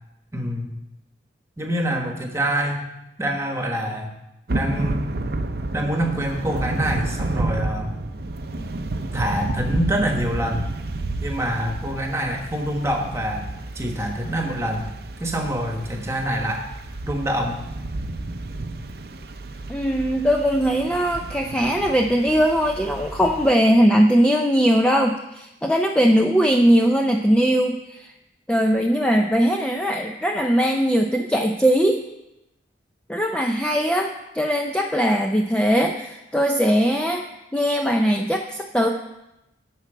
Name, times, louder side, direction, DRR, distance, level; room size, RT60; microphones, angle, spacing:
voice 1, 0.3-0.7 1.6-2.8 3.2-4.1 4.5-5.1 5.7-8.0 8.6-8.7 9.1-10.7 11.2-13.5 13.7-14.9 15.2-16.7 17.0-17.6, right 1 dB, 15° right, 2 dB, 1.3 m, -25 dB
Thunder / Rain, 4.5-23.5, right 2 dB, 55° right, 0.6 m, -31 dB
voice 2, 19.7-28.1 28.5-32.0 33.1-37.2 37.5-38.9, equal, 5° left, 2 dB, 0.4 m, -20 dB
12.0 x 4.5 x 7.7 m, 0.92 s
head